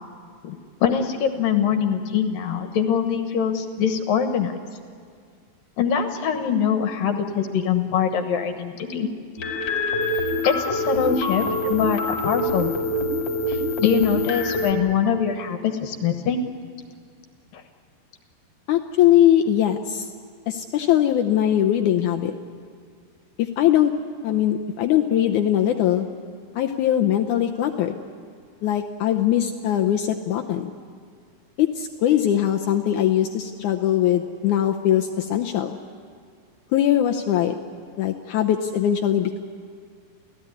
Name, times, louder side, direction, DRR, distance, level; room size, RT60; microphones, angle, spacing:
voice 1, 0.4-4.5 5.8-9.1 10.4-12.8 13.5-16.4 17.5-17.6, left 7 dB, 65° left, 7 dB, 2.7 m, -23 dB
sound 1, 9.4-14.7, left 1 dB, 35° left, 2.5 m, -25 dB
voice 2, 18.7-20.1 20.5-22.3 23.4-23.9 24.2-26.1 26.5-28.0 28.6-30.7 31.6-35.8 36.7-37.5 38.0-39.4, left 11 dB, 90° left, 4 dB, 1.7 m, -21 dB
29.0 x 16.0 x 9.8 m, 2.1 s
omnidirectional pair, 4.6 m